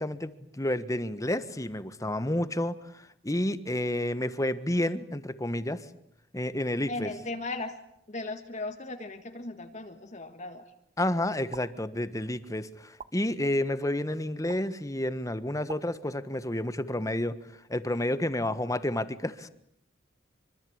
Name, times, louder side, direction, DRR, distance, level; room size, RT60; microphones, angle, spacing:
voice 1, 0.0-5.8 6.3-7.1 11.0-17.4 17.7-19.5, left 1 dB, 20° left, 12 dB, 1.4 m, -30 dB
voice 2, 6.9-7.7 8.1-10.6, left 2 dB, 40° left, 5 dB, 1.8 m, -37 dB
sound 1, 11.5-11.7 13.0-13.1 14.5-14.6 15.7-15.8, right 5 dB, 40° right, 1.3 m, -41 dB
25.0 x 25.0 x 8.8 m, 0.75 s
head